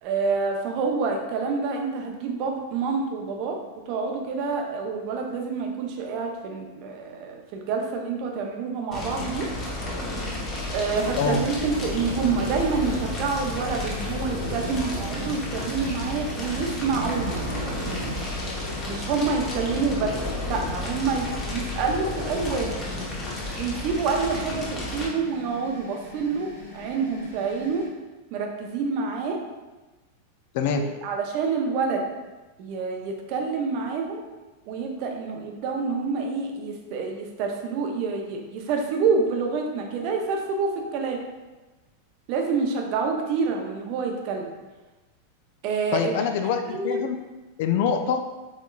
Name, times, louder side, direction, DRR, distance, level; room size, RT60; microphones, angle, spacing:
voice 1, 0.0-3.6 3.9-9.5 10.7-17.4 18.9-20.1 20.5-22.8 23.6-27.8 28.3-29.4 30.8-32.0 32.6-34.2 34.7-41.2 42.3-44.5 45.6-46.1 46.6-47.0, right 4 dB, 45° right, 2 dB, 0.6 m, -27 dB
Fire, 8.9-25.1, left 2 dB, 25° left, 1.0 m, -32 dB
sound 1, 10.9-18.2, right 2 dB, 80° right, 0.5 m, -37 dB
sound 2, 12.4-27.9, left 2 dB, 70° left, 1.3 m, -44 dB
voice 2, 45.9-47.1 47.6-48.2, left 7 dB, 50° left, 6 dB, 0.4 m, -24 dB
4.3 x 3.9 x 2.4 m, 1.2 s
figure-of-eight pair, 90°, 0 cm